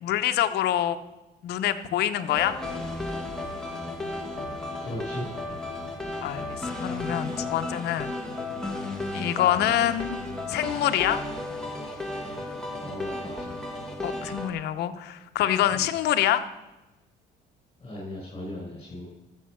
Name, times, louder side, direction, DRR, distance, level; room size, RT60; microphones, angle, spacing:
voice 1, 0.0-1.0 1.4-2.6 6.2-8.1 9.1-10.2 10.5-11.2 14.0-16.5, left 12 dB, 75° left, 9 dB, 0.9 m, -26 dB
sound 1, 2.3-14.5, left 2 dB, 5° left, 2.1 m, -34 dB
voice 2, 4.8-5.3 12.7-13.6 15.6-15.9 17.8-19.1, left 1 dB, 30° left, -4 dB, 5.8 m, -37 dB
14.0 x 7.5 x 6.4 m, 1.0 s
cardioid pair, 110°, 17 cm